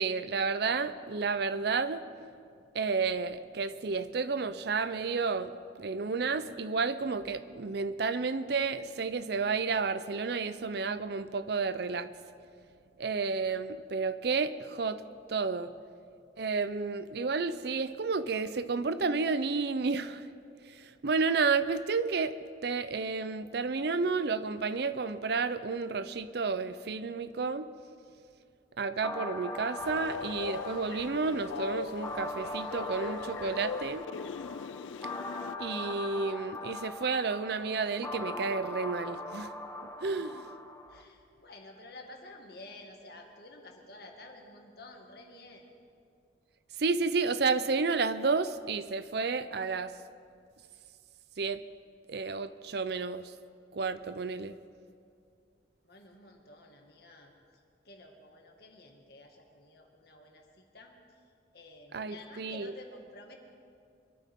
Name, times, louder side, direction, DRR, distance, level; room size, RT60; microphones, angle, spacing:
voice 1, 0.0-2.0 2.7-5.5 5.8-12.1 13.0-15.0 15.3-15.7 16.4-20.2 20.8-22.4 22.6-27.7 28.8-34.0 35.6-39.5 40.0-40.4 46.8-49.9 51.4-51.6 52.1-53.3 53.7-54.6 61.9-62.7, right 4 dB, 60° right, 13 dB, 0.5 m, -31 dB
sound 1, 29.0-41.0, left 2 dB, 15° left, 0.9 m, -41 dB
Train, 29.8-35.6, left 6 dB, 85° left, 0.4 m, -40 dB
voice 2, 40.6-45.7 55.8-57.3 57.8-60.9 61.5-63.4, left 2 dB, 55° left, 1 dB, 2.0 m, -51 dB
24.0 x 13.5 x 3.6 m, 2.3 s
head